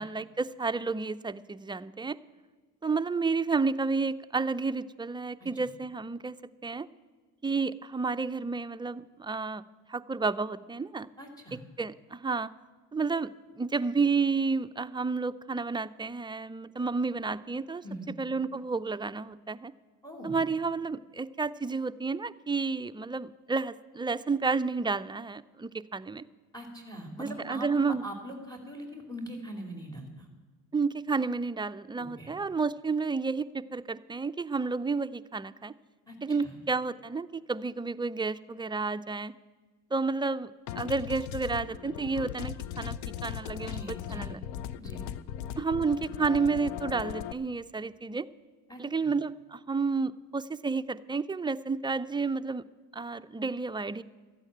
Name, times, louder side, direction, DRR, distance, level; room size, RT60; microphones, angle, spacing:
voice 1, 0.0-2.2 2.8-6.4 6.6-6.9 7.4-9.6 9.9-11.1 11.8-12.5 12.9-13.3 13.6-17.8 18.2-19.7 20.2-26.2 27.2-28.1 30.7-35.7 36.2-39.3 39.9-43.0 43.2-44.4 45.6-48.3 48.8-52.6 52.9-54.0, right 4 dB, 10° right, 12 dB, 0.4 m, -31 dB
voice 2, 11.2-11.6 17.8-18.1 20.0-20.4 26.5-30.3 32.0-32.3 36.1-36.6 43.7-44.3 44.8-45.1 48.7-49.1, right 1 dB, 10° left, 4 dB, 2.8 m, -42 dB
sound 1, 40.7-47.3, left 10 dB, 75° left, 0.7 m, -38 dB
13.0 x 9.0 x 8.6 m, 1.3 s
hypercardioid pair, 65°, 40 cm